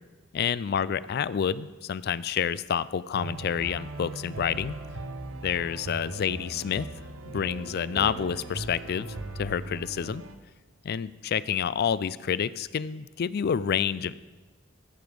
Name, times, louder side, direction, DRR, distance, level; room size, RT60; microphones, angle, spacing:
voice 1, 0.3-4.8 5.4-6.9 7.3-9.1 9.4-10.2 10.8-14.1, left 7 dB, 50° left, 18 dB, 0.4 m, -28 dB
sound 1, 3.1-10.3, right 2 dB, 85° right, 0.9 m, -39 dB
15.0 x 7.0 x 5.0 m, 1.2 s
head